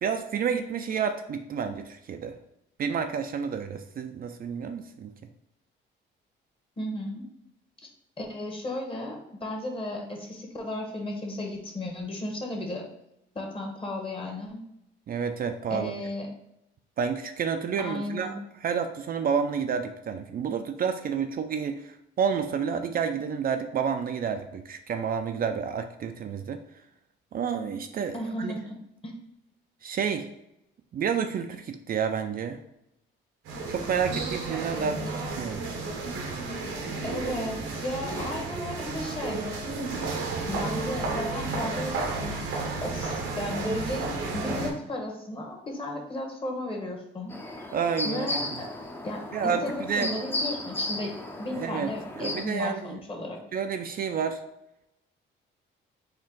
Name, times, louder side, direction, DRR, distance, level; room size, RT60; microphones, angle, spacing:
voice 1, 0.0-2.3 2.8-5.1 15.1-15.9 17.0-26.6 27.3-28.5 29.8-30.3 30.9-32.6 33.7-35.0 35.4-35.6 47.7-48.4 49.3-50.1 51.6-51.9 52.2-53.0 53.5-54.4, right 6 dB, 45° right, 7 dB, 0.4 m, -30 dB
voice 2, 6.8-7.2 7.8-7.9 8.2-12.9 13.3-14.6 15.7-16.3 17.8-18.4 28.1-28.8 29.0-29.1 35.0-35.1 37.0-39.5 40.5-47.3 48.0-48.7 49.0-49.2 49.6-53.4, left 1 dB, 25° left, 1 dB, 1.1 m, -34 dB
sound 1, 33.5-44.7, right 3 dB, 90° right, 1.0 m, -32 dB
sound 2, 47.3-52.4, left 1 dB, 10° left, 0.6 m, -34 dB
4.3 x 2.5 x 3.8 m, 0.82 s
cardioid pair, 90°, 20 cm